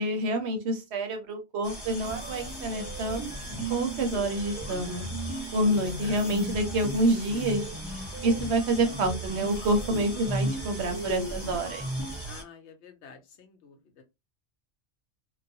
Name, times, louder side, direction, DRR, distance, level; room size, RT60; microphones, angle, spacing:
voice 1, 0.0-3.3 3.7-5.0 5.5-7.7 8.2-11.9, right 1 dB, 70° right, 0.8 m, -27 dB
sound 1, 1.6-12.4, equal, 25° left, 0.6 m, -41 dB
sound 2, 2.0-12.3, right 1 dB, 30° right, 0.6 m, -36 dB
voice 2, 5.7-6.2 12.3-14.0, left 6 dB, 70° left, 0.8 m, -49 dB
2.3 x 2.0 x 2.6 m
omnidirectional pair, 1.3 m